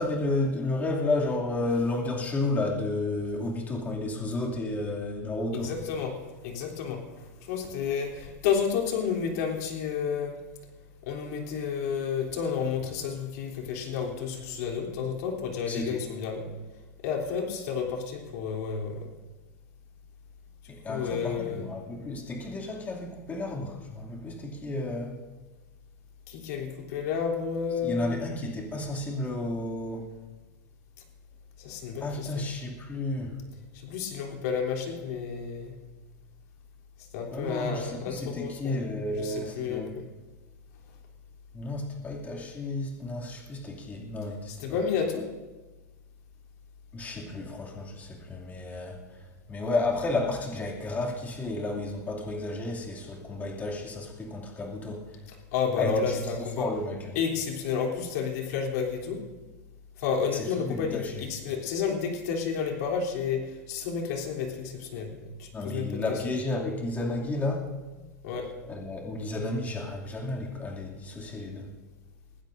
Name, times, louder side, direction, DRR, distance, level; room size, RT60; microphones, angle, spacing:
voice 1, 0.0-5.7 15.7-16.0 20.8-25.2 27.8-30.1 32.0-33.3 37.3-39.9 41.5-44.8 46.9-49.2 49.5-55.2 55.8-56.2 56.6-57.2 60.3-61.2 65.5-67.7 68.6-71.7, left 2 dB, 15° left, -2 dB, 2.7 m, -32 dB
voice 2, 5.5-6.2 6.4-10.4 11.0-16.5 17.0-19.1 20.6-21.6 26.3-28.2 31.6-32.5 33.7-35.7 37.0-40.0 44.5-45.3 55.3-56.7 57.2-59.2 60.0-66.2 68.2-68.5, left 6 dB, 65° left, 0 dB, 3.4 m, -31 dB
21.0 x 16.0 x 2.7 m, 1.2 s
supercardioid pair, 140°, 9 cm